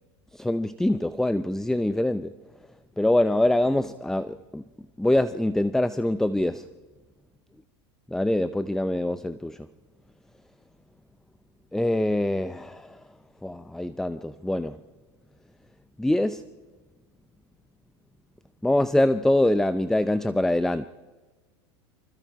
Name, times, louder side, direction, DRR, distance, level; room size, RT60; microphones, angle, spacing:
voice 1, 0.3-2.3 3.0-4.6 5.0-6.7 8.1-9.6 11.7-13.0 13.4-14.8 16.0-16.4 18.6-20.9, left 1 dB, 5° left, 14 dB, 0.6 m, -24 dB
25.5 x 25.5 x 4.7 m, 1.4 s
hypercardioid pair, 105°, 15 cm